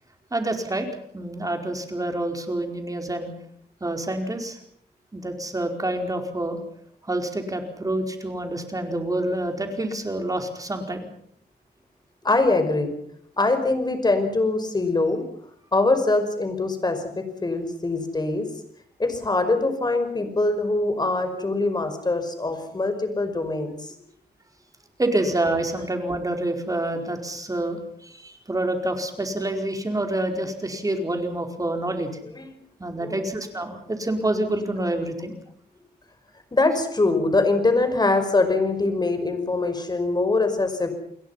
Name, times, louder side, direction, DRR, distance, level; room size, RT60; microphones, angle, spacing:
voice 1, 0.3-0.9 1.1-3.3 3.8-4.6 5.1-6.6 7.1-11.1 25.0-32.1 32.8-35.3, right 1 dB, 20° right, 4 dB, 4.9 m, -27 dB
voice 2, 12.2-12.9 13.4-15.2 15.7-18.5 19.0-23.9 32.4-32.5 33.0-33.2 36.5-40.9, left 2 dB, 25° left, 8 dB, 5.5 m, -23 dB
29.5 x 22.0 x 5.8 m, 0.66 s
wide cardioid pair, 110°, 17 cm